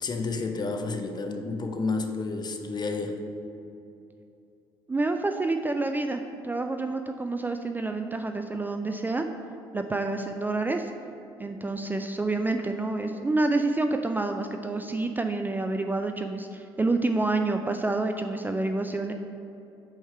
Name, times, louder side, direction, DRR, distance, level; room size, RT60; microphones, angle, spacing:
voice 1, 0.0-3.2, left 3 dB, 35° left, 5 dB, 0.7 m, -30 dB
voice 2, 4.9-9.3 9.7-10.9 11.4-19.1, right 2 dB, 15° right, 6 dB, 0.3 m, -28 dB
5.3 x 3.6 x 5.7 m, 2.8 s
hypercardioid pair, 55°, 13 cm